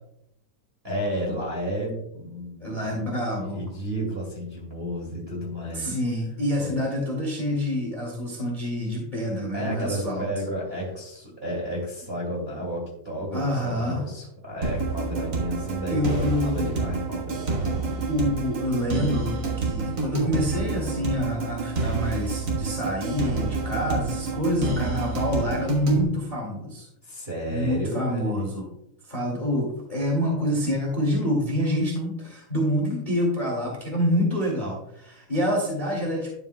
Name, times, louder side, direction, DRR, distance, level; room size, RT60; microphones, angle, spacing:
voice 1, 0.8-3.0 3.4-5.9 6.6-6.7 9.5-17.7 27.0-28.5, equal, 20° right, -3 dB, 2.1 m, -32 dB
voice 2, 2.6-3.6 5.7-10.2 13.3-14.1 15.9-16.8 18.1-26.9 27.5-28.6 29.1-36.4, equal, 15° left, -2 dB, 2.0 m, -27 dB
sound 1, 14.6-26.0, right 4 dB, 50° right, 1.5 m, -28 dB
12.0 x 7.2 x 2.2 m, 0.76 s
omnidirectional pair, 3.5 m